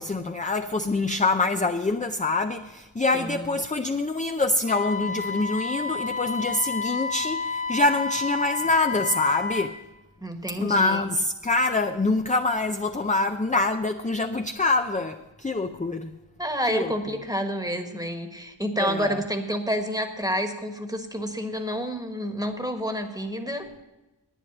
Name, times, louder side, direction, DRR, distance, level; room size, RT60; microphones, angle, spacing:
voice 1, 0.0-9.8 10.6-16.1 16.7-16.9 18.8-19.2, left 2 dB, 15° left, 6 dB, 0.5 m, -25 dB
voice 2, 3.1-3.5 10.2-11.0 16.4-23.7, equal, 10° right, 5 dB, 1.4 m, -29 dB
Wind instrument woodwind instrument, 4.7-9.7, left 4 dB, 90° left, 1.6 m, -30 dB
11.0 x 9.5 x 5.9 m, 1.1 s
wide cardioid pair, 45°, 49 cm